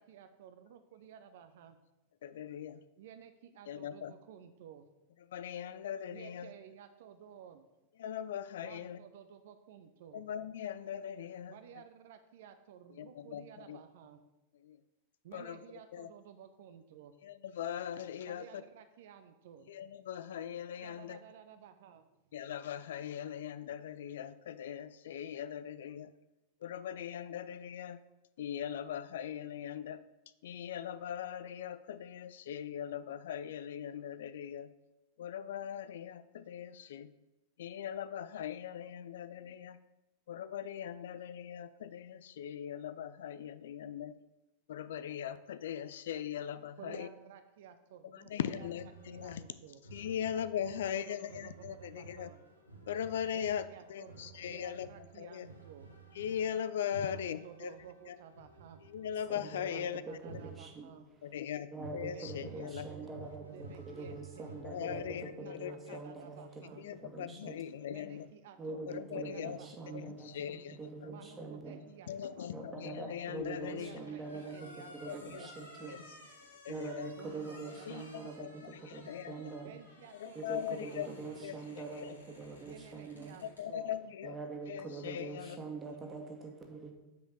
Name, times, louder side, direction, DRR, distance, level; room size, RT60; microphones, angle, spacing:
voice 1, 0.0-1.8 3.0-4.9 6.1-7.7 8.6-10.2 11.5-14.2 15.2-17.1 18.3-19.7 20.8-22.1 46.8-48.7 49.1-49.8 50.7-52.4 53.3-55.9 57.0-58.8 59.7-61.1 62.1-64.5 65.4-66.8 67.9-70.0 71.1-72.8 73.7-76.0 77.2-78.4 79.6-81.5 82.6-83.9, right 9 dB, 55° right, 8 dB, 0.6 m, -54 dB
voice 2, 2.2-2.8 3.7-4.1 5.3-6.5 8.0-9.0 10.1-11.8 12.9-13.8 14.6-14.8 15.3-15.6 15.9-16.1 17.2-18.6 19.7-21.2 22.3-26.1 26.6-28.0 28.4-30.0 30.4-34.7 35.2-37.1 37.6-39.8 40.3-44.2 44.7-47.1 48.0-49.4 49.9-52.3 52.9-54.9 55.1-55.5 56.1-57.7 58.1-58.2 58.8-60.0 60.3-60.4 61.2-62.9 64.6-66.0 66.7-68.3 68.9-69.6 69.9-71.1 72.1-74.0 75.1-75.5 75.9-76.0 76.6-77.1 77.9-79.4 80.1-81.1 81.4-81.6 81.9-82.1 83.4-84.4 84.7-85.6, left 9 dB, 60° left, 14 dB, 0.3 m, -40 dB
sound 1, 48.4-61.3 61.8-65.2, right 4 dB, 85° right, 1.2 m, -52 dB
voice 3, 59.3-60.9 61.7-66.6 66.9-67.6 68.6-71.8 72.5-75.9 76.5-79.7 80.3-83.4 84.2-86.9, right 3 dB, 20° right, 2 dB, 1.6 m, -44 dB
sound 2, 73.4-83.7, left 1 dB, 80° left, 2.9 m, -57 dB
6.1 x 5.1 x 6.8 m, 0.96 s
figure-of-eight pair, 90°, 0 cm